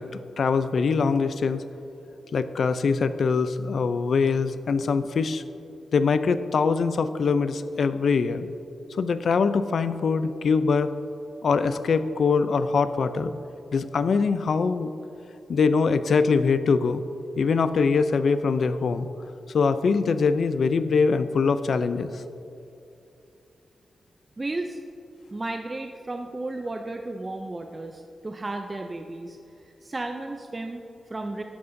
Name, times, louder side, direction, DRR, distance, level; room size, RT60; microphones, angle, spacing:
voice 1, 0.0-1.6 2.3-5.4 5.9-8.5 8.9-10.9 11.4-13.3 13.7-14.9 15.5-17.0 17.4-19.1 19.5-22.2, left 5 dB, 65° left, 12 dB, 0.4 m, -23 dB
voice 2, 24.4-24.8 25.3-29.4 29.8-31.4, right 2 dB, 25° right, 4 dB, 0.4 m, -33 dB
12.0 x 9.4 x 2.6 m, 2.7 s
wide cardioid pair, 110°, 0 cm